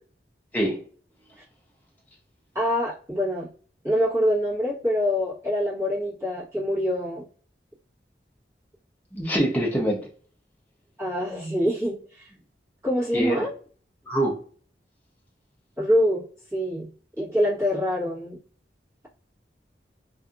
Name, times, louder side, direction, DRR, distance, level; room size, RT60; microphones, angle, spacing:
voice 1, 2.5-3.5 3.8-7.2 11.0-12.2 12.8-13.5 15.8-16.2 16.5-16.9 17.2-18.4, equal, 15° right, 1.2 m, -25 dB
voice 2, 9.1-10.0 13.1-13.5 14.1-14.4, right 1 dB, 10° left, 0.5 m, -24 dB
2.6 x 2.4 x 2.4 m
head